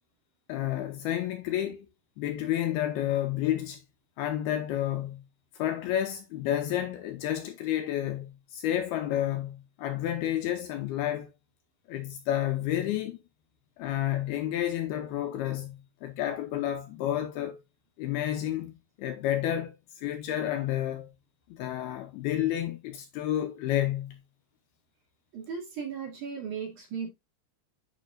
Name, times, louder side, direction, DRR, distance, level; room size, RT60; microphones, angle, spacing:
voice 1, 0.5-1.9 2.2-3.8 4.2-5.2 5.6-11.3 11.9-13.2 13.8-17.6 18.0-18.7 19.0-21.1 21.5-24.2, left 12 dB, 75° left, 2.4 m, -30 dB
voice 2, 25.3-27.1, right 6 dB, 50° right, 3.6 m, -36 dB
8.5 x 6.6 x 2.5 m
omnidirectional pair, 5.0 m